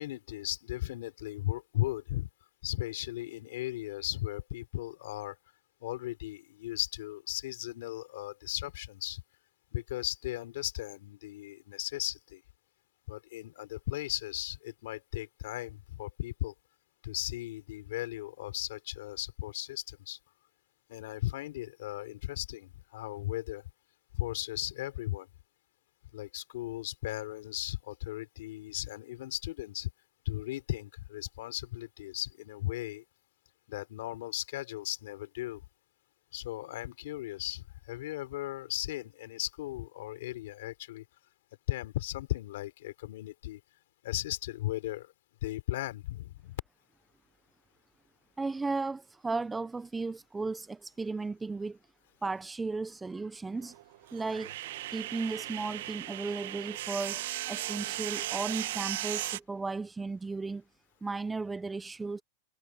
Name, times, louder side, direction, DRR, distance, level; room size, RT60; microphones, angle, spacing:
voice 1, 0.0-2.3 2.6-5.4 5.8-9.2 9.7-12.4 13.1-16.5 17.0-20.2 20.9-23.6 24.1-25.3 26.1-29.9 30.2-33.0 33.7-35.6 36.3-41.0 41.7-43.6 44.0-45.1 45.4-46.6, left 16 dB, 65° left, 3.4 m, -36 dB
voice 2, 48.4-51.8 52.2-53.7 54.1-54.5 54.9-60.6 61.0-62.2, right 3 dB, 5° right, 0.4 m, -35 dB
sound 1, 53.6-59.4, right 15 dB, 60° right, 0.9 m, -37 dB
supercardioid pair, 165°, 0 cm